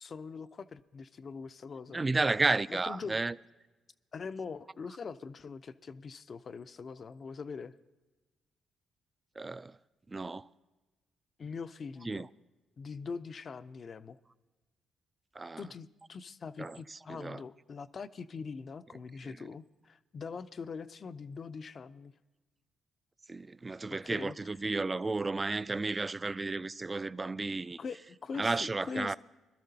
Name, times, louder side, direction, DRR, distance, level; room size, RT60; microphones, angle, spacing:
voice 1, 0.0-2.1 2.7-3.2 4.1-7.7 11.4-12.3 12.8-14.2 15.6-22.1 23.9-24.5 27.8-29.2, left 5 dB, 50° left, 0.4 m, -42 dB
voice 2, 1.9-3.3 9.4-9.7 10.1-10.5 12.1-12.3 15.4-15.6 16.6-17.4 19.2-19.4 23.3-27.8 28.4-29.2, right 3 dB, 30° right, 0.3 m, -33 dB
21.5 x 12.5 x 2.8 m
hypercardioid pair, 50°, 0 cm